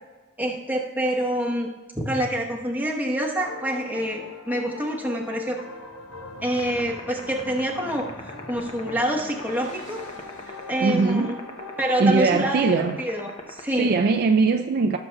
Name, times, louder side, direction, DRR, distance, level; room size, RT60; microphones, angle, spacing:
voice 1, 0.4-1.7 2.0-5.6 6.4-10.0 10.5-11.4 11.8-13.9, right 1 dB, 10° right, 1.0 m, -27 dB
sound 1, 3.4-12.1, left 4 dB, 90° left, 0.9 m, -41 dB
sound 2, 5.7-11.1, left 2 dB, 60° left, 2.3 m, -45 dB
sound 3, 6.6-14.1, left 3 dB, 25° left, 0.7 m, -37 dB
voice 2, 10.8-11.3 12.0-13.0 13.8-15.0, right 4 dB, 50° right, 0.3 m, -20 dB
17.0 x 6.9 x 2.3 m
head